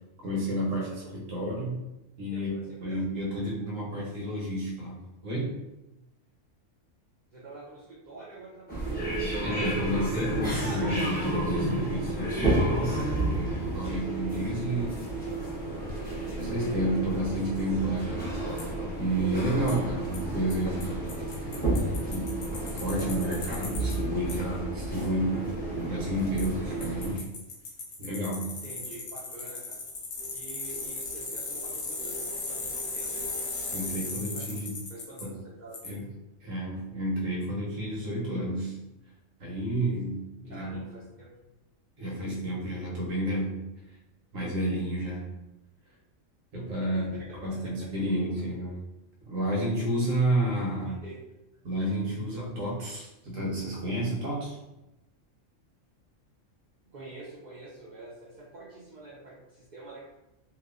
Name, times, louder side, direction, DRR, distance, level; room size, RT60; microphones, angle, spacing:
voice 1, 0.2-1.9 2.2-5.6 9.4-13.0 13.3-15.4 16.0-18.7 19.0-21.1 21.4-21.7 22.1-22.3 22.6-27.3 28.0-28.5 33.7-34.8 35.2-35.3 35.8-36.1 36.4-38.8 39.4-40.8 42.0-43.6 44.3-45.3 46.5-47.1 47.3-48.8 49.2-51.0 51.6-54.6, right 1 dB, 80° right, -4 dB, 1.2 m, -31 dB
voice 2, 2.3-3.1 7.3-10.0 13.8-14.0 28.5-29.8 30.3-33.1 34.1-36.0 40.5-41.3 46.9-47.2 47.5-48.1 50.8-51.4 56.9-60.1, right 2 dB, 65° right, -7 dB, 0.4 m, -47 dB
sound 1, 8.7-27.1, right 1 dB, 15° left, 0.3 m, -31 dB
Bicycle, 18.6-18.7 19.7-19.8 20.1-20.2 20.5-20.6 20.8-20.9 21.1-23.9 24.3-24.4 26.4-26.5 26.8-35.2 35.7-35.9, left 3 dB, 65° left, 0.9 m, -36 dB
2.8 x 2.1 x 2.3 m, 0.95 s
omnidirectional pair, 1.3 m